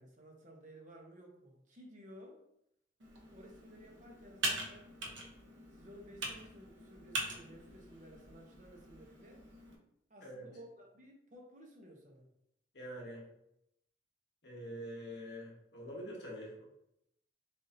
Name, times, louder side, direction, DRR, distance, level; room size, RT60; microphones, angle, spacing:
voice 1, 0.0-2.4 3.3-5.0 5.7-9.5 10.1-12.3, equal, 40° right, 1 dB, 0.9 m, -55 dB
Computer keyboard, 3.0-9.8, right 2 dB, 90° right, 1.0 m, -43 dB
voice 2, 12.7-13.2 14.4-16.7, equal, 65° left, -3 dB, 1.3 m, -45 dB
6.5 x 2.7 x 2.8 m, 0.78 s
head